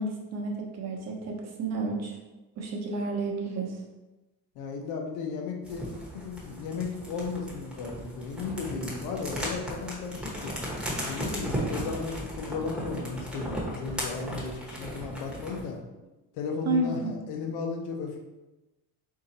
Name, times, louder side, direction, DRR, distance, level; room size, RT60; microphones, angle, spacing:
voice 1, 0.0-2.2 2.6-3.8 16.6-17.1, right 2 dB, 40° right, 0 dB, 0.9 m, -31 dB
voice 2, 4.5-5.8 6.1-10.6 11.1-15.8 16.3-18.2, left 5 dB, 85° left, 2 dB, 0.9 m, -35 dB
sound 1, 5.6-15.7, equal, ahead, 1.0 m, -36 dB
3.9 x 2.8 x 4.1 m, 1.1 s
cardioid pair, 140°, 39 cm